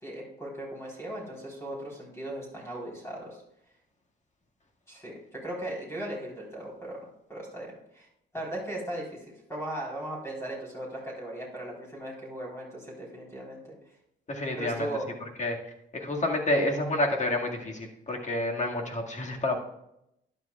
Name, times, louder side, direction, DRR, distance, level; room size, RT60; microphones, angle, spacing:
voice 1, 0.0-3.4 4.9-7.0 7.3-8.1 8.3-13.6 14.5-15.1 16.0-16.1, right 1 dB, 15° left, -4 dB, 4.0 m, -38 dB
voice 2, 14.3-14.9 15.4-15.6 15.9-19.6, left 1 dB, 35° left, 1 dB, 2.0 m, -29 dB
12.0 x 11.0 x 2.4 m, 0.80 s
cardioid pair, 90°, 20 cm